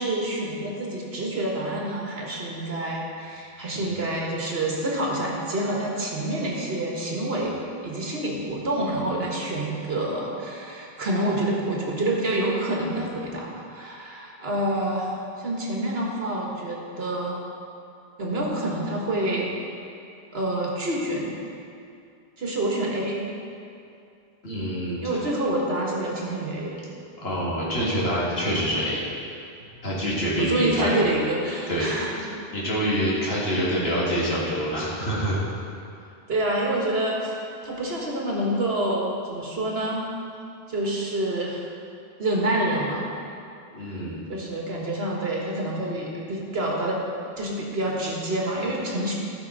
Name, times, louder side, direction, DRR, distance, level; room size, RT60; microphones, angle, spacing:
voice 1, 0.0-17.4 18.2-19.5 20.3-21.4 22.4-23.3 25.0-26.8 30.4-32.2 36.3-40.1 40.7-41.6 42.2-43.1 44.3-47.0 47.3-49.1, right 1 dB, 75° right, -2 dB, 1.8 m, -27 dB
voice 2, 3.7-4.1 24.4-25.2 27.2-29.0 29.8-31.1 31.7-31.9 32.5-35.4 43.7-44.2, equal, 80° left, -7 dB, 2.6 m, -26 dB
15.0 x 6.0 x 4.0 m, 2.5 s
omnidirectional pair, 1.0 m